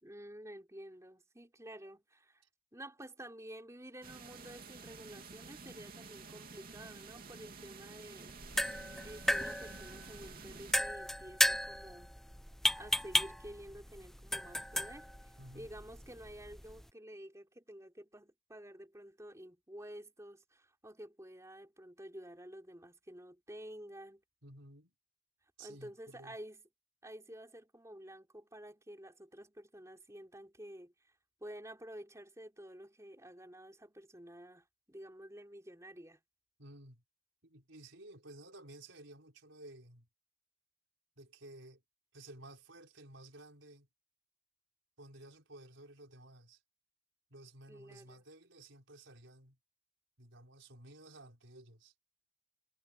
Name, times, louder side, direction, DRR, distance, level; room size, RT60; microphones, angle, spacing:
voice 1, 0.0-2.4 2.7-8.3 9.0-12.1 12.8-24.2 25.6-26.6 27.0-30.9 31.4-36.2 47.7-48.2, right 1 dB, 15° right, 4.4 m, -51 dB
sound 1, 4.0-10.7, right 4 dB, 45° right, 2.9 m, -51 dB
sound 2, 8.3-16.9, left 1 dB, ahead, 0.9 m, -35 dB
voice 2, 15.4-15.8 24.4-24.9 25.6-26.4 36.6-37.0 37.4-40.1 41.2-41.8 42.1-43.9 45.0-46.6 47.3-49.6 50.2-51.9, right 1 dB, 65° right, 5.1 m, -54 dB
head